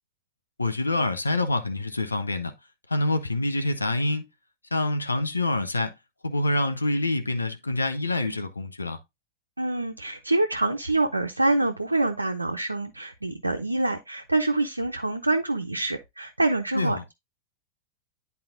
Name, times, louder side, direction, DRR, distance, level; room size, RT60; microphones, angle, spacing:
voice 1, 0.6-2.5 2.9-4.3 4.7-5.9 6.2-9.0 16.7-17.0, left 2 dB, 80° left, 0.7 m, -26 dB
voice 2, 9.6-17.1, right 2 dB, 85° right, 0.5 m, -26 dB
10.5 x 4.2 x 2.5 m
figure-of-eight pair, 90°, 0 cm